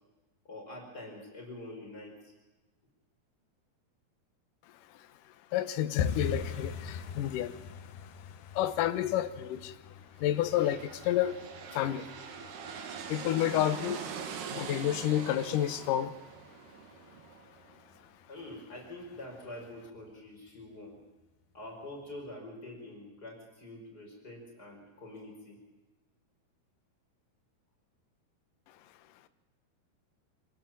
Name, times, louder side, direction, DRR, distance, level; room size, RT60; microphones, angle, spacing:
voice 1, 0.4-2.2 12.6-12.8 18.3-21.0 21.5-25.6, left 1 dB, 25° left, 5.7 m, -46 dB
voice 2, 5.5-7.5 8.6-9.7 10.2-11.4 11.7-12.1 13.1-14.0 14.5-16.1, left 12 dB, 70° left, 2.3 m, -30 dB
sound 1, 6.0-16.7 17.0-17.7 17.9-18.2 18.5-18.9 19.2-19.3 19.8-20.3 20.6-20.7 21.2-21.3, left 6 dB, 85° left, 3.3 m, -41 dB
sound 2, 10.2-17.9, right 7 dB, 80° right, 3.9 m, -43 dB
26.5 x 17.0 x 7.5 m
omnidirectional pair, 4.6 m